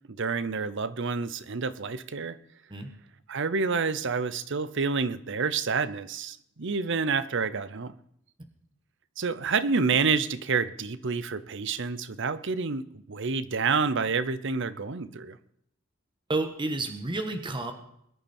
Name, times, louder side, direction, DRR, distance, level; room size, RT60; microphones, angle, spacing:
voice 1, 0.2-2.4 3.3-7.9 9.2-15.4, right 5 dB, 60° right, 0.8 m, -28 dB
voice 2, 16.3-17.7, right 2 dB, 25° right, 1.4 m, -30 dB
22.5 x 10.5 x 4.4 m
head